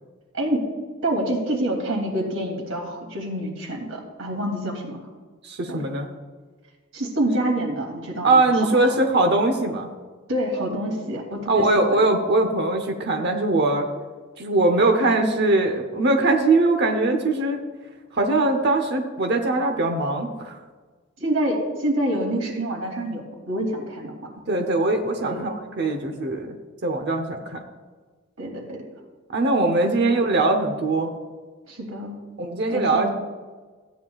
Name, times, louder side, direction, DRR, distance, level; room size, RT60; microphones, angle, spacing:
voice 1, 0.3-0.7 1.0-5.1 5.7-5.9 6.9-8.9 10.3-12.0 21.2-24.3 25.2-25.5 28.4-28.8 31.7-32.2 32.7-33.1, right 1 dB, 80° right, 0 dB, 2.8 m, -27 dB
voice 2, 5.4-6.1 8.2-9.9 11.5-13.9 14.4-17.6 18.1-20.6 24.5-26.6 26.8-27.6 29.3-31.1 32.4-33.1, right 2 dB, 55° right, 4 dB, 0.8 m, -21 dB
15.5 x 9.2 x 2.4 m, 1.4 s
head